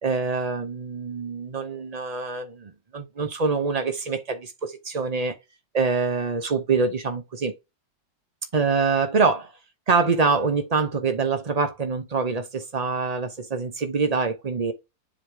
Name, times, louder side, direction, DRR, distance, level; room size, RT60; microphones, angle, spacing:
voice 1, 0.0-5.3 5.7-7.5 8.5-9.5 9.9-14.7, right 4 dB, 80° right, 0.3 m, -25 dB
7.6 x 3.1 x 4.8 m
omnidirectional pair, 2.0 m